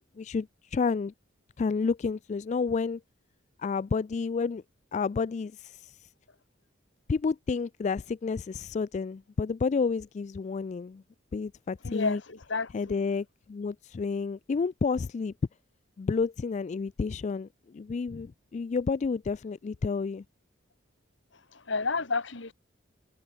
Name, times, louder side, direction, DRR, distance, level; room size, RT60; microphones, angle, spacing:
voice 1, 0.2-1.1 1.6-3.0 3.6-4.6 4.9-6.1 7.1-11.0 11.3-12.2 12.7-15.3 16.0-20.2, left 4 dB, 35° left, 0.3 m, -30 dB
voice 2, 11.8-13.0 21.5-22.5, left 4 dB, 70° left, 1.8 m, -31 dB
head